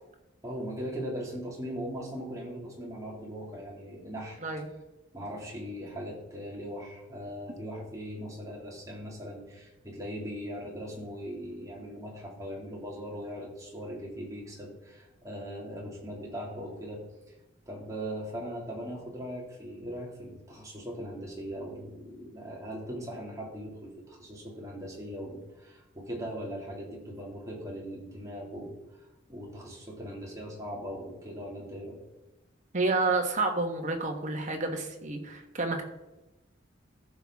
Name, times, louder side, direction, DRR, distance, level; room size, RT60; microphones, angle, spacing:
voice 1, 0.4-4.4 5.1-17.0 17.7-28.8 29.3-32.0, equal, 15° right, -3 dB, 2.3 m, -39 dB
voice 2, 32.7-35.8, right 3 dB, 40° right, 3 dB, 1.4 m, -29 dB
14.5 x 6.2 x 3.6 m, 1.0 s
head